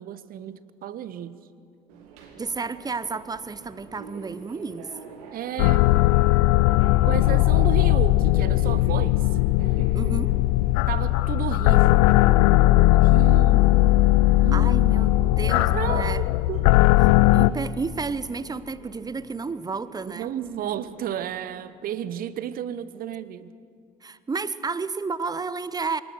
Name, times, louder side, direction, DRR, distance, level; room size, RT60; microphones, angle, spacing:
voice 1, 0.0-1.4 5.3-5.9 7.1-9.2 9.6-9.9 10.9-12.1 12.9-14.1 14.4-14.7 15.7-16.7 20.1-23.5, right 10 dB, 50° right, 15 dB, 0.9 m, -33 dB
Subway metro underground, 1.9-21.3, right 5 dB, 70° right, 2.2 m, -45 dB
voice 2, 2.4-4.9 9.9-10.3 14.5-16.2 17.3-20.3 24.0-26.0, right 4 dB, 20° right, 16 dB, 0.8 m, -31 dB
sound 1, 5.6-17.5, left 17 dB, 65° left, 0.4 m, -18 dB
24.0 x 19.5 x 6.4 m, 2.4 s
figure-of-eight pair, 50°, 20 cm